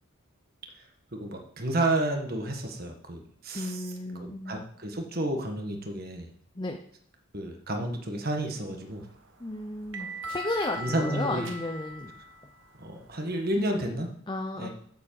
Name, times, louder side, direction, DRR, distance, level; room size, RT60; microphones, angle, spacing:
voice 1, 1.1-3.8 4.2-6.3 7.3-9.0 10.8-11.5 12.8-14.1 14.6-14.7, right 1 dB, 45° right, 3 dB, 1.7 m, -31 dB
voice 2, 3.5-4.7 6.5-6.8 9.4-12.1 13.5-14.0 14.3-14.7, left 2 dB, 20° left, 2 dB, 0.8 m, -34 dB
sound 1, 8.8-13.7, equal, 60° right, 1.2 m, -41 dB
8.0 x 7.3 x 7.7 m, 0.65 s
head